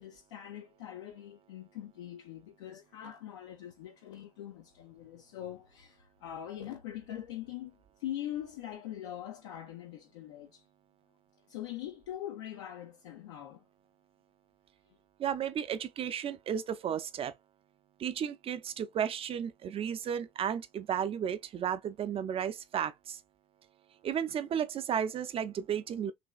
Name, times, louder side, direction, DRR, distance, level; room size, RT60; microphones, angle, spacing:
voice 1, 0.0-10.6 11.5-13.6 14.9-15.0, left 11 dB, 75° left, 0.5 m, -43 dB
voice 2, 15.2-17.3 18.0-23.2 24.0-26.1, right 8 dB, 40° right, 0.6 m, -33 dB
3.3 x 3.0 x 2.3 m
figure-of-eight pair, 55°, 15 cm